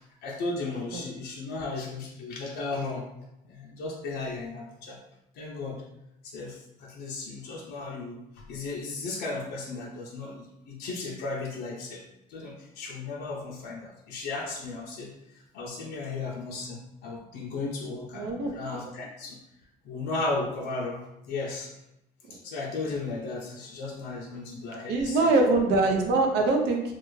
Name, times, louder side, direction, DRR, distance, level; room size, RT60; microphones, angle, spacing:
voice 1, 0.0-3.1 3.4-5.0 5.3-5.9 6.2-12.0 12.3-19.4 19.8-21.0 21.3-21.7 22.3-25.3, left 3 dB, 80° left, -2 dB, 0.5 m, -35 dB
voice 2, 18.2-18.5 24.9-26.8, right 3 dB, 85° right, 2 dB, 0.6 m, -23 dB
2.4 x 2.3 x 3.0 m, 0.87 s
cardioid pair, 110°, 17 cm